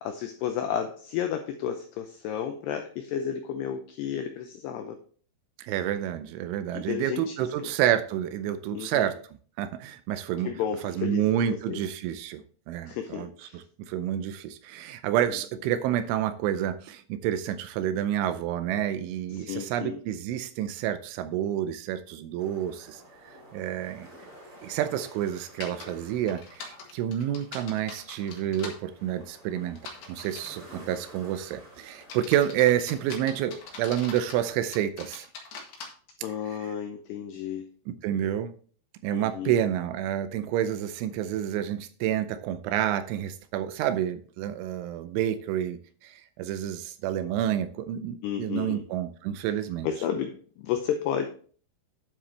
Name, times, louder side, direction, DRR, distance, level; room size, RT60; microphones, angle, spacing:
voice 1, 0.0-5.0 6.7-7.7 8.7-9.1 10.4-11.8 12.8-13.6 19.4-20.0 36.2-37.7 39.1-39.6 48.2-48.8 49.8-51.3, left 9 dB, 85° left, 6 dB, 2.3 m, -32 dB
voice 2, 5.6-9.1 9.6-10.5 10.8-24.1 24.6-29.8 30.1-35.3 37.9-38.5 39.0-49.9, right 11 dB, 85° right, 11 dB, 2.9 m, -29 dB
sound 1, 22.4-34.5, right 1 dB, 35° right, 3.2 m, -51 dB
sound 2, 25.6-25.9 26.3-28.8 29.8-30.6 31.2-31.5 32.0-34.4 34.7-35.9, left 4 dB, 55° left, 2.9 m, -42 dB
9.9 x 7.6 x 3.2 m, 0.43 s
omnidirectional pair, 5.7 m